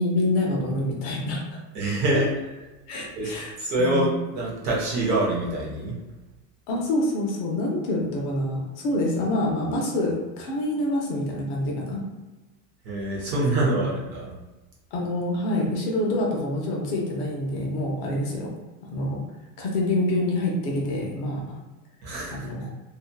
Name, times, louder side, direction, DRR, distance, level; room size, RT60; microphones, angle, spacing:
voice 1, 0.0-1.6 2.9-3.5 3.8-4.0 6.7-12.0 13.7-13.8 14.9-18.5 18.9-19.2 19.6-21.4 22.3-22.7, left 1 dB, 40° left, -2 dB, 0.6 m, -26 dB
voice 2, 1.7-2.3 3.2-3.3 3.6-5.9 12.8-14.3 22.0-22.5, right 2 dB, 35° right, -4 dB, 0.6 m, -25 dB
2.7 x 2.3 x 2.2 m, 1.1 s
supercardioid pair, 155°, 48 cm